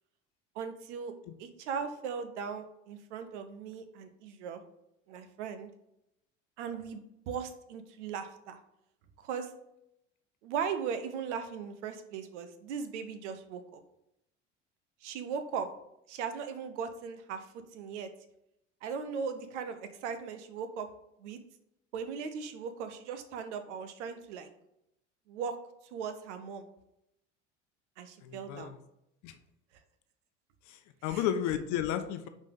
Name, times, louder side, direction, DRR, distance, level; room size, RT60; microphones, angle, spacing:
voice 1, 0.5-1.1 1.4-4.6 5.1-5.7 6.6-8.6 9.2-9.5 10.4-13.8 15.0-15.7 16.1-17.5 17.7-18.1 18.8-20.9 21.2-21.4 21.9-24.5 25.3-25.6 25.9-26.7 28.0-28.7 31.1-31.3, right 6 dB, 70° right, 9 dB, 0.8 m, -38 dB
voice 2, 28.2-28.7 29.2-29.3 30.7-32.3, left 10 dB, 50° left, 9 dB, 0.8 m, -33 dB
5.3 x 4.1 x 5.3 m, 0.82 s
figure-of-eight pair, 65°, 37 cm